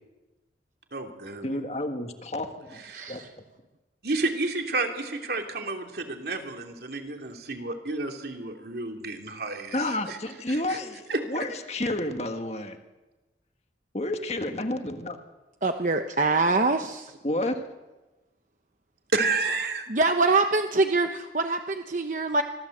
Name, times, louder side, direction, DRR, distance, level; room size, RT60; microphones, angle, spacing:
voice 1, 0.9-1.5 2.9-3.1 4.0-10.2 10.5-10.8 11.1-11.5 19.1-19.8, right 3 dB, 60° right, 3 dB, 2.9 m, -31 dB
voice 2, 1.4-3.2 9.7-12.8 13.9-15.2 17.2-17.6, left 1 dB, 35° left, 6 dB, 1.7 m, -30 dB
voice 3, 2.9-3.3 15.6-17.1 19.9-22.4, right 3 dB, 45° right, 6 dB, 1.0 m, -24 dB
25.0 x 16.0 x 7.9 m, 1.1 s
head